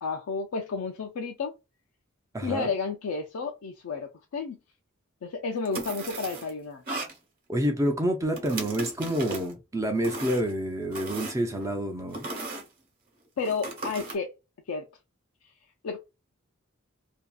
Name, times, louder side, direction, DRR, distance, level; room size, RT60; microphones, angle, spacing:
voice 1, 0.0-1.5 2.4-4.6 5.2-6.8 13.4-14.3 14.7-14.8 15.8-16.0, left 4 dB, 85° left, 0.4 m, -31 dB
voice 2, 2.3-2.7 7.5-12.3, equal, 15° right, 0.4 m, -28 dB
sound 1, 5.7-6.5 6.9-7.2 8.3-9.5 10.0-10.5 10.9-11.7 12.1-12.6 13.4-14.2, right 2 dB, 40° right, 0.9 m, -36 dB
2.6 x 2.3 x 2.3 m
head